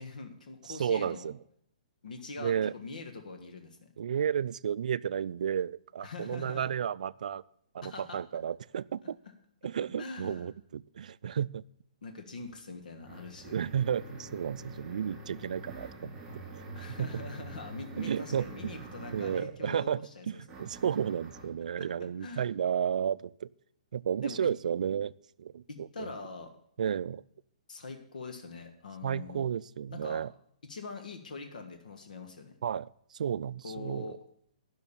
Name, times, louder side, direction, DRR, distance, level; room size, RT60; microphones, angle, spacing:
voice 1, 0.0-1.3 2.0-3.9 6.0-6.7 7.8-8.2 10.0-10.5 12.0-13.5 16.7-20.6 21.8-21.9 22.2-22.4 24.2-24.5 25.7-26.5 27.7-29.4 29.9-30.3 30.6-32.6 33.6-34.2, left 4 dB, 85° left, 5 dB, 1.5 m, -43 dB
voice 2, 0.7-1.4 2.4-2.7 4.0-7.4 7.7-9.2 9.6-11.6 13.5-16.1 16.8-17.1 18.0-18.9 19.1-23.5 23.9-25.1 25.4-26.1 26.8-27.2 29.0-30.3 32.6-34.2, right 8 dB, 70° right, 18 dB, 0.3 m, -32 dB
sound 1, 12.4-19.6 20.5-21.6, right 2 dB, 15° right, 2.8 m, -46 dB
10.5 x 6.3 x 7.0 m, 0.67 s
hypercardioid pair, 155°, 4 cm